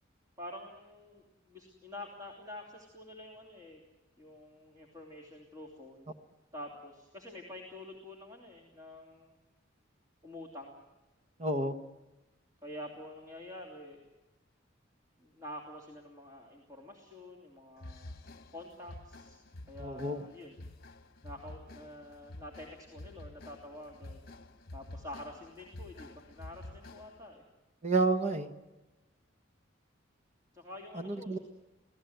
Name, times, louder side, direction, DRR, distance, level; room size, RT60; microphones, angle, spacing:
voice 1, 0.4-3.8 4.2-6.1 6.5-9.4 10.2-10.8 12.6-14.0 15.2-18.2 18.5-19.4 19.7-20.6 21.2-24.2 24.7-27.4 30.5-31.4, left 1 dB, 20° right, -1 dB, 3.0 m, -47 dB
voice 2, 11.4-11.8 19.8-20.2 27.8-28.5 30.9-31.4, right 3 dB, 35° right, 6 dB, 1.1 m, -30 dB
sound 1, 17.8-27.3, left 1 dB, 50° left, 1.1 m, -49 dB
26.5 x 17.5 x 8.0 m, 1.1 s
head